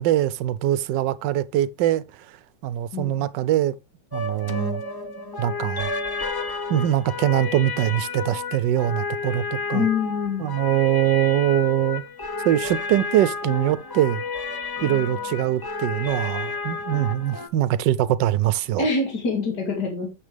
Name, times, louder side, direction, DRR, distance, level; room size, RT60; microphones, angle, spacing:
voice 1, 0.0-2.0 2.6-3.8 4.1-4.8 5.4-5.9 6.7-9.9 10.4-12.0 12.4-14.2 14.8-18.9, right 12 dB, 80° right, 1.3 m, -23 dB
voice 2, 2.9-3.2 9.7-10.5 18.8-20.1, left 4 dB, 65° left, 3.1 m, -25 dB
sound 1, 4.1-17.5, left 4 dB, 25° left, 0.5 m, -31 dB
10.0 x 7.5 x 3.4 m
omnidirectional pair, 1.9 m